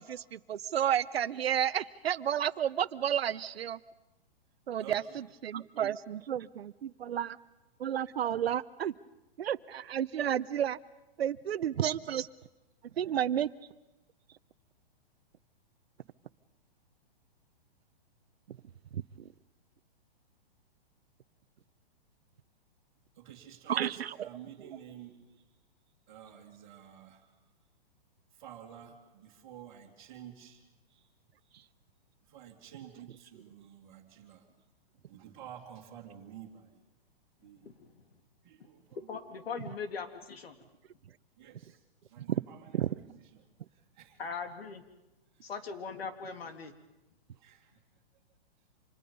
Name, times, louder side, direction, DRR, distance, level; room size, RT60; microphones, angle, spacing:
voice 1, 0.0-3.8 4.7-7.4 7.8-8.9 9.4-10.8 11.2-12.3 13.0-13.5 18.5-18.6 18.9-19.3 23.7-24.3 42.2-42.3 42.7-42.9, right 10 dB, 85° right, 14 dB, 0.9 m, -31 dB
voice 2, 4.8-5.2 23.1-25.4 26.1-27.5 28.3-31.1 32.3-34.5 35.1-36.8 37.4-37.7 38.4-39.0 41.4-44.2 45.3-45.4 47.3-47.7, right 9 dB, 25° right, -5 dB, 2.3 m, -51 dB
voice 3, 37.6-38.0 39.1-40.5 44.2-44.8 45.4-46.7, left 5 dB, 75° left, 6 dB, 3.2 m, -40 dB
29.5 x 26.5 x 5.4 m, 1.0 s
hypercardioid pair, 175°, 30 cm